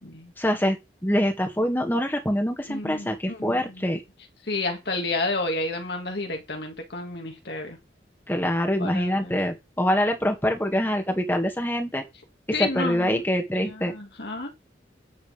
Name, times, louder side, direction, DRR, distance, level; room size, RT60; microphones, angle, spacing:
voice 1, 0.4-4.0 8.3-12.0 12.5-13.9, equal, 10° left, 2.2 m, -25 dB
voice 2, 2.7-4.0 4.5-7.8 8.8-9.4 12.5-13.2 13.5-14.5, left 2 dB, 65° left, 2.2 m, -31 dB
10.5 x 8.3 x 3.5 m
head